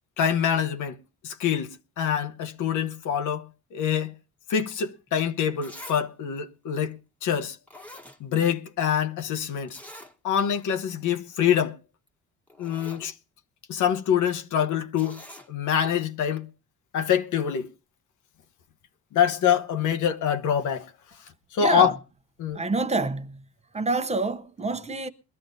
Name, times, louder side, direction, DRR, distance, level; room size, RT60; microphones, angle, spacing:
voice 1, 0.2-1.0 1.2-3.4 3.7-4.1 4.5-7.0 7.2-7.6 8.2-9.8 10.2-11.8 12.6-13.1 13.7-15.2 15.5-16.5 16.9-17.7 19.1-20.9 21.5-21.9 22.4-22.6, left 8 dB, 75° left, 1.0 m, -25 dB
Zipper (clothing), 5.1-5.2 5.6-6.0 6.4-6.5 7.3-7.4 7.7-8.7 8.9-9.0 9.7-10.1 10.6-10.7 11.0-11.2 12.1-12.2 12.5-13.1 15.0-15.5 16.4-16.5, left 1 dB, 5° left, 1.2 m, -45 dB
voice 2, 21.6-21.9 22.5-23.4 23.7-25.1, right 3 dB, 20° right, 0.7 m, -27 dB
22.0 x 13.0 x 2.7 m
cardioid pair, 115°, 31 cm